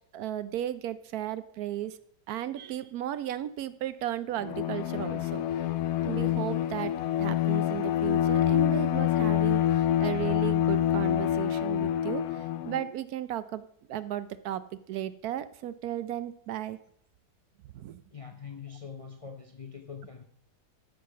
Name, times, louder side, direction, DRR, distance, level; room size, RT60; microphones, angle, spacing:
voice 1, 0.1-2.0 2.3-5.4 6.0-6.9 7.2-16.8 17.7-18.0, right 12 dB, 75° right, 1.1 m, -35 dB
Bowed string instrument, 4.4-12.9, left 11 dB, 75° left, 1.1 m, -27 dB
voice 2, 18.1-20.2, left 6 dB, 30° left, 0.6 m, -43 dB
13.0 x 5.1 x 5.9 m
omnidirectional pair, 1.7 m